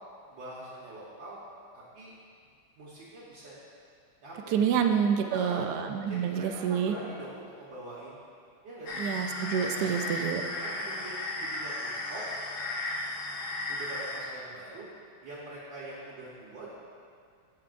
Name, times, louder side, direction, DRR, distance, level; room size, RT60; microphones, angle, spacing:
voice 1, 0.3-1.4 1.7-2.1 2.8-3.6 4.2-4.8 5.1-5.7 6.1-8.2 8.6-9.0 9.7-10.0 10.6-12.2 13.7-14.9 15.2-16.7, right 1 dB, 65° right, -8 dB, 1.8 m, -43 dB
voice 2, 4.5-6.9 9.0-10.4, right 7 dB, 80° right, 5 dB, 0.9 m, -27 dB
sound 1, 8.9-14.2, left 2 dB, 75° left, 1.8 m, -35 dB
15.5 x 5.9 x 2.5 m, 2.2 s
omnidirectional pair, 2.3 m